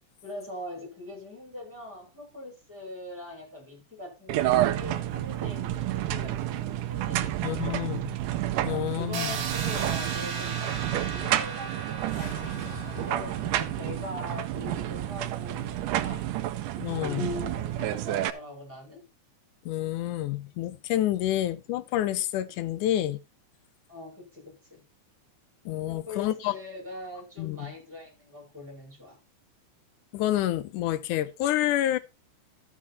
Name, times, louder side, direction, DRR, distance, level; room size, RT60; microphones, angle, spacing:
voice 1, 0.2-7.9 8.6-19.0 22.5-22.7 23.9-24.8 25.8-29.2, left 2 dB, 5° right, 6.0 m, -42 dB
sound 1, 4.3-18.3, right 13 dB, 90° right, 2.2 m, -30 dB
voice 2, 7.4-8.2 8.6-9.4 16.8-17.3 19.7-23.2 25.7-26.5 27.4-27.7 30.1-32.0, left 13 dB, 85° left, 2.2 m, -28 dB
sound 2, 9.1-14.9, right 6 dB, 60° right, 2.1 m, -37 dB
sound 3, 12.1-16.4, left 5 dB, 50° left, 3.7 m, -46 dB
13.5 x 6.1 x 4.1 m
omnidirectional pair, 3.6 m